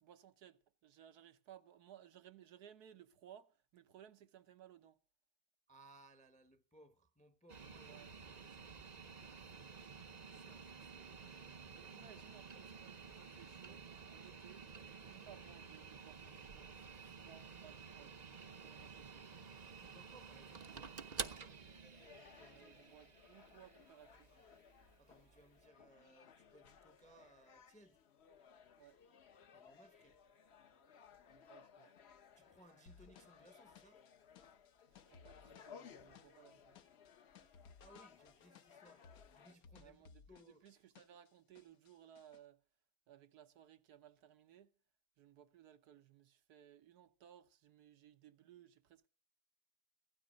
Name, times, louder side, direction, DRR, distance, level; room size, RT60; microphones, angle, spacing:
voice 1, 0.0-5.0 7.9-8.1 11.7-18.2 18.6-19.3 22.5-24.3 28.8-29.0 31.3-31.9 35.1-36.8 39.8-42.6 43.1-44.7 45.2-49.1, right 10 dB, 80° right, 1.4 m, -61 dB
voice 2, 5.7-10.0 10.3-11.6 19.7-20.9 22.3-22.8 25.0-28.0 29.5-30.2 32.4-34.0 37.8-39.0 39.3-40.7, right 1 dB, 5° left, 0.7 m, -65 dB
sound 1, 7.5-25.6, right 5 dB, 40° right, 0.7 m, -52 dB
sound 2, 21.4-39.6, left 7 dB, 50° left, 0.9 m, -62 dB
sound 3, 32.9-41.3 41.5-42.4, left 6 dB, 70° left, 1.3 m, -62 dB
16.0 x 12.5 x 5.1 m
omnidirectional pair, 1.7 m